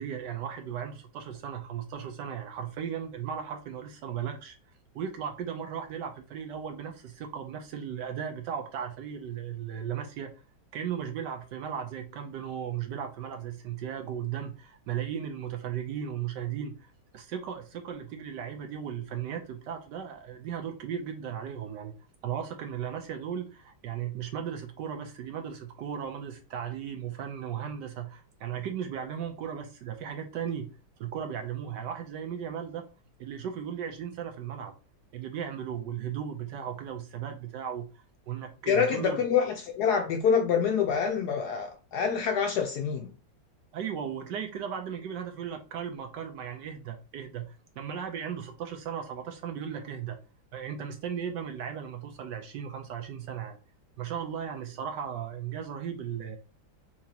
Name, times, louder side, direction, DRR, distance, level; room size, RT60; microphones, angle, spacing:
voice 1, 0.0-4.6 4.9-10.3 10.7-21.9 22.2-30.7 31.0-32.9 33.2-34.7 35.1-39.2 43.7-50.2 50.5-53.6 54.0-56.4, right 8 dB, 70° right, 1.1 m, -36 dB
voice 2, 38.7-43.1, left 7 dB, 75° left, 0.9 m, -26 dB
5.8 x 2.8 x 2.8 m
omnidirectional pair, 2.2 m